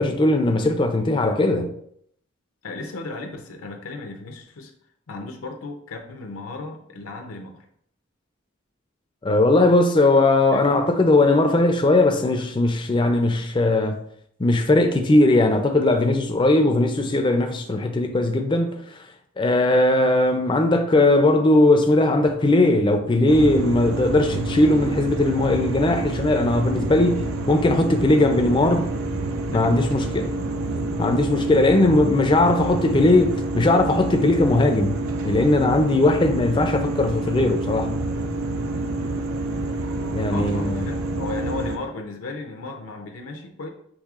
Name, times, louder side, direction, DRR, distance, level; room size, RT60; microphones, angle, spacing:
voice 1, 0.0-1.7 9.2-14.0 14.4-18.7 19.4-28.9 29.5-30.3 31.0-35.0 35.2-38.0 40.1-40.8, left 2 dB, 25° left, 0.4 m, -19 dB
voice 2, 2.6-4.7 5.1-7.7 10.5-10.8 28.6-28.9 29.5-29.9 32.4-32.8 40.3-43.7, left 3 dB, 80° left, 0.6 m, -35 dB
sound 1, 23.3-41.8, right 2 dB, 80° right, 0.6 m, -27 dB
6.4 x 3.2 x 2.4 m
head